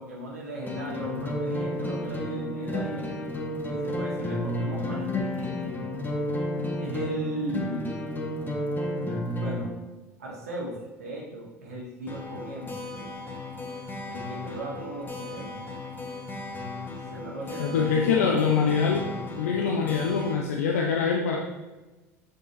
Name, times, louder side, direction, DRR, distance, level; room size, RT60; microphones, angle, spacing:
voice 1, 0.0-3.1 3.7-5.8 6.8-8.2 9.0-9.7 10.2-12.8 14.0-15.6 17.1-18.4, right 1 dB, 75° right, -3 dB, 1.6 m, -37 dB
sound 1, 0.6-9.7 12.1-20.3, left 1 dB, 25° left, 1.7 m, -33 dB
voice 2, 17.6-19.1 19.4-21.4, left 6 dB, 70° left, 1 dB, 0.7 m, -24 dB
7.0 x 6.5 x 3.1 m, 1.1 s
figure-of-eight pair, 70°, 8 cm